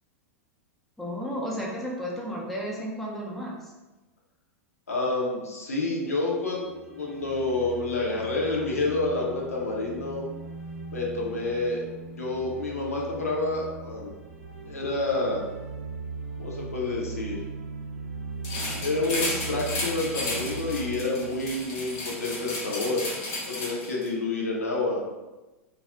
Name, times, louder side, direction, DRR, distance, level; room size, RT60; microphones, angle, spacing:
voice 1, 1.0-3.7, equal, 5° left, -4 dB, 0.5 m, -33 dB
voice 2, 4.9-10.2 10.9-11.8 12.2-14.1 14.7-15.4 16.4-17.4 18.8-23.0 23.5-25.0, left 2 dB, 75° left, -3 dB, 0.7 m, -28 dB
sound 1, 6.5-22.6, right 4 dB, 70° right, 0.6 m, -40 dB
sound 2, 18.4-24.1, left 2 dB, 40° left, 0.8 m, -33 dB
2.3 x 2.0 x 3.4 m, 1.1 s
figure-of-eight pair, 90°, 8 cm